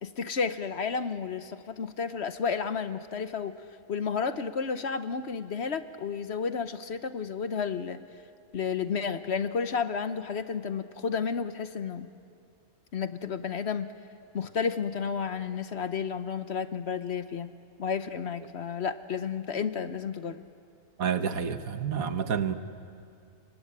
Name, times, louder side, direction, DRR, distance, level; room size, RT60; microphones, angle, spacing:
voice 1, 0.0-3.5 3.9-8.0 8.5-12.1 12.9-13.9 14.3-17.5 17.8-20.4, left 6 dB, 55° left, 11 dB, 1.1 m, -31 dB
voice 2, 21.0-22.5, right 7 dB, 75° right, 9 dB, 1.6 m, -29 dB
29.0 x 24.0 x 8.8 m, 2.4 s
omnidirectional pair, 1.5 m